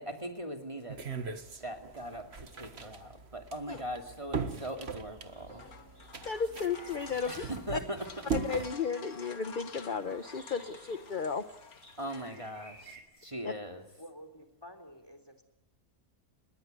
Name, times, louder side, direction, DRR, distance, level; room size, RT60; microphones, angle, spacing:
voice 1, 0.0-5.6 7.3-8.1 12.0-13.8, right 1 dB, 20° right, 4 dB, 2.6 m, -40 dB
sound 1, 0.9-8.7, right 5 dB, 45° right, 1.8 m, -39 dB
sound 2, 4.2-4.6 5.0-13.0, right 2 dB, 80° right, 6.1 m, -59 dB
sound 3, 5.2-12.8, left 5 dB, 65° left, 2.1 m, -50 dB
voice 2, 6.2-7.8 8.3-11.4 13.4-13.5, left 6 dB, 35° left, 10 dB, 1.0 m, -34 dB
voice 3, 14.0-15.4, equal, 15° left, 9 dB, 3.3 m, -50 dB
28.5 x 21.0 x 8.0 m, 0.89 s
omnidirectional pair, 1.6 m